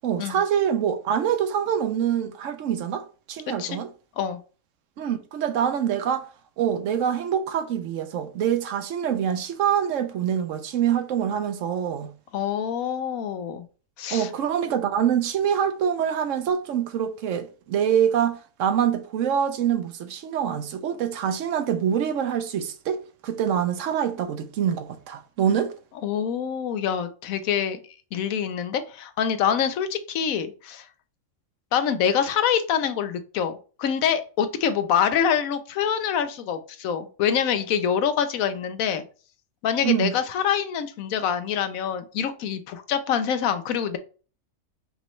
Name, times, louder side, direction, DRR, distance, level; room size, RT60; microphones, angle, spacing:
voice 1, 0.0-3.9 5.0-6.3 6.6-12.1 14.1-25.7 39.8-40.1, right 8 dB, 70° right, 0.9 m, -25 dB
voice 2, 12.3-13.7 14.0-14.3 26.0-27.8 28.1-30.9 31.7-39.0 39.6-44.0, left 8 dB, 80° left, 1.1 m, -25 dB
5.3 x 3.0 x 3.1 m
omnidirectional pair, 1.4 m